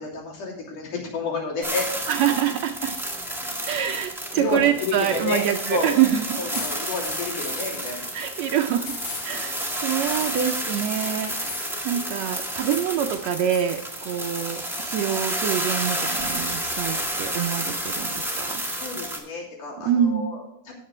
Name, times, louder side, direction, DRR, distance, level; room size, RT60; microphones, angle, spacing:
voice 1, 0.0-1.9 3.3-3.6 4.3-5.4 5.7-5.9 6.4-8.1 18.7-20.7, left 3 dB, 80° left, -3 dB, 4.5 m, -30 dB
sound 1, 1.6-19.2, right 1 dB, 5° right, 0.3 m, -30 dB
voice 2, 2.1-3.0 3.7-6.2 6.5-6.6 8.1-8.9 9.2-18.6 19.8-20.3, right 9 dB, 75° right, 5 dB, 1.6 m, -25 dB
sound 2, 6.5-8.1 8.8-9.3 10.1-10.5 11.3-11.8 12.4-12.9 13.3-13.9 14.2-15.3 15.7-16.8 17.2-18.5, left 4 dB, 50° left, 2.8 m, -38 dB
16.5 x 6.7 x 3.2 m, 0.84 s
omnidirectional pair, 3.6 m